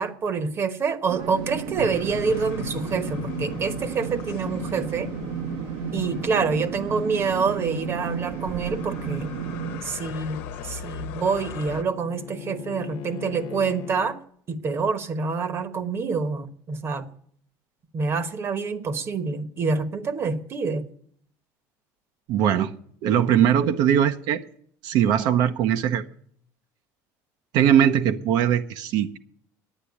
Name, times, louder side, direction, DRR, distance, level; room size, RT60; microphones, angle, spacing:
voice 1, 0.0-5.1 5.9-9.3 9.8-14.2 14.5-17.0 17.9-20.9, right 5 dB, 35° right, 11 dB, 1.1 m, -27 dB
sound 1, 1.1-9.8, right 7 dB, 85° right, 1.6 m, -33 dB
sound 2, 1.8-11.8, left 9 dB, 90° left, 1.0 m, -38 dB
Bowed string instrument, 10.3-14.2, left 10 dB, 65° left, 0.7 m, -40 dB
voice 2, 22.3-22.7 23.0-24.4 24.8-26.0 27.5-29.2, right 9 dB, 65° right, 8 dB, 0.9 m, -20 dB
10.0 x 9.0 x 8.5 m, 0.62 s
cardioid pair, 140°, 8 cm